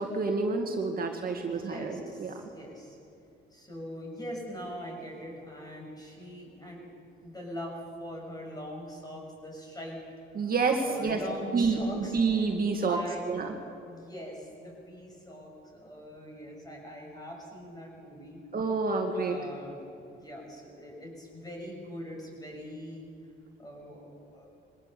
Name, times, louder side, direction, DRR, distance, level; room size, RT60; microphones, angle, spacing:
voice 1, 0.0-2.3 10.3-11.2 11.5-13.0 13.3-13.5 18.5-19.4, right 4 dB, 50° right, 3 dB, 2.1 m, -28 dB
voice 2, 1.4-3.0 3.5-10.0 10.7-12.2 12.8-13.3 13.8-18.4 19.2-19.8 20.1-23.1 23.6-24.5, equal, 20° left, -1 dB, 6.8 m, -42 dB
22.5 x 17.5 x 7.0 m, 2.7 s
cardioid pair, 90°, 20 cm